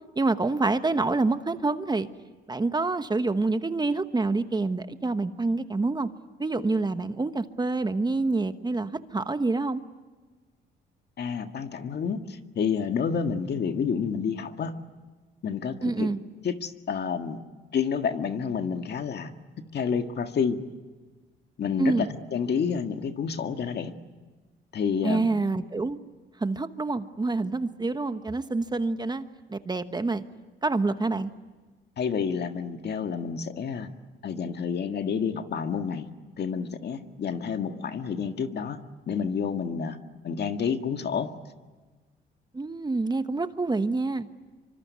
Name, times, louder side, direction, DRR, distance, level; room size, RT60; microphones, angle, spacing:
voice 1, 0.2-2.1 2.5-6.1 6.4-9.8 15.8-16.2 21.8-22.1 25.0-26.0 26.4-29.2 29.5-30.2 30.6-31.3 42.5-44.3, right 3 dB, 20° right, 10 dB, 1.2 m, -27 dB
voice 2, 11.2-14.7 15.4-16.1 16.4-17.4 17.7-20.6 21.6-23.9 24.7-25.3 32.0-33.9 34.2-36.1 36.4-38.8 39.1-40.0 40.2-41.3, left 6 dB, 55° left, 7 dB, 1.8 m, -29 dB
25.5 x 24.5 x 9.5 m, 1.3 s
cardioid pair, 90°, 20 cm